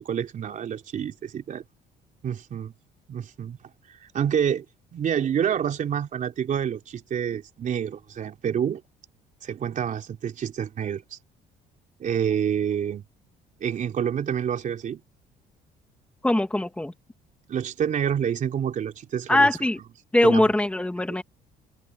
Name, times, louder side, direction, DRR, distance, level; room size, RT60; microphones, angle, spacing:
voice 1, 0.0-1.6 2.2-2.7 3.1-3.6 4.1-4.7 4.9-8.8 9.4-11.2 12.0-13.0 13.6-15.0 17.5-19.5 20.2-20.5 21.1-21.2, right 8 dB, 50° right, 3.7 m, -28 dB
voice 2, 16.2-16.9 19.3-19.8 20.1-21.2, left 1 dB, 5° left, 2.2 m, -21 dB
cardioid pair, 110°, 17 cm